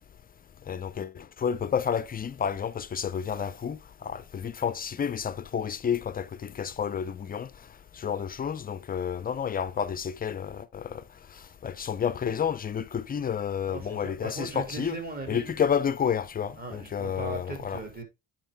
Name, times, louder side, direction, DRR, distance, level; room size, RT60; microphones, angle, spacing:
voice 1, 0.7-7.5 8.0-11.0 11.6-15.0 15.3-17.8, left 7 dB, 25° left, 0.4 m, -30 dB
voice 2, 13.7-15.5 16.6-18.0, right 3 dB, 25° right, 2.3 m, -38 dB
8.9 x 4.6 x 3.4 m
cardioid pair, 115°, 35 cm